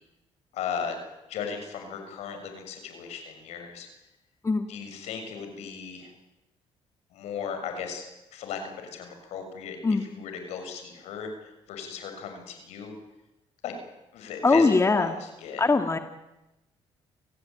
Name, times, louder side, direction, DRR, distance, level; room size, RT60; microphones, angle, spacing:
voice 1, 0.5-1.0 1.3-3.9 4.7-6.1 7.1-8.0 8.3-9.8 10.1-12.9 13.6-13.7 14.1-15.6, left 6 dB, 80° left, 6 dB, 6.7 m, -36 dB
voice 2, 14.4-15.2 15.6-16.0, left 3 dB, 25° left, 6 dB, 2.3 m, -21 dB
30.0 x 17.0 x 9.1 m, 0.96 s
supercardioid pair, 75°, 11 cm